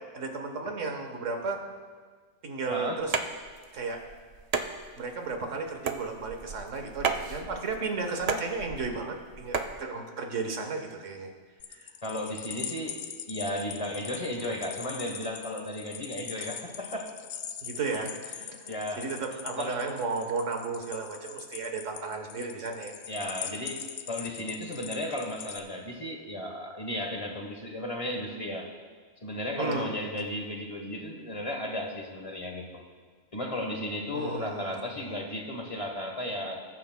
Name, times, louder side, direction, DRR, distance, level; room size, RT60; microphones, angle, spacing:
voice 1, 0.1-1.6 2.4-3.1 3.7-4.0 5.0-11.3 11.7-11.9 17.6-22.9 29.6-30.0 34.1-35.1, right 4 dB, 70° right, 4 dB, 1.4 m, -34 dB
voice 2, 2.7-3.0 12.0-17.1 18.7-19.1 19.6-19.9 23.1-28.7 29.2-32.8 33.3-36.6, left 1 dB, 30° left, 2 dB, 1.1 m, -34 dB
sound 1, 3.0-9.8, right 5 dB, 50° right, 0.4 m, -34 dB
sound 2, 11.6-25.6, left 8 dB, 60° left, 0.8 m, -41 dB
20.0 x 9.1 x 2.2 m, 1.5 s
omnidirectional pair, 1.4 m